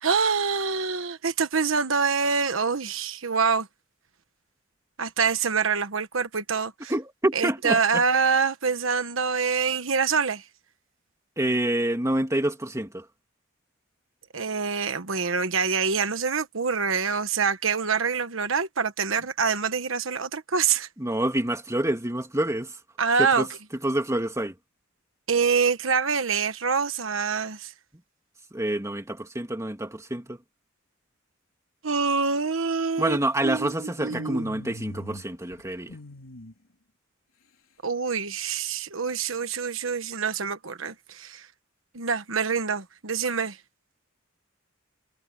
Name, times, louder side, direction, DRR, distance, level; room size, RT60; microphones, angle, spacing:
voice 1, 0.0-3.7 5.0-6.9 7.3-10.4 14.3-20.9 23.0-23.5 25.3-27.7 31.8-33.2 33.4-34.4 37.8-41.5 41.9-43.6, right 5 dB, 75° right, 1.3 m, -25 dB
voice 2, 6.9-8.0 11.4-13.1 21.0-22.8 23.2-23.5 23.8-24.5 28.5-30.4 33.0-36.0, right 1 dB, 15° right, 2.3 m, -27 dB
sound 1, 34.1-35.3 35.5-36.5, left 1 dB, 85° left, 3.2 m, -41 dB
head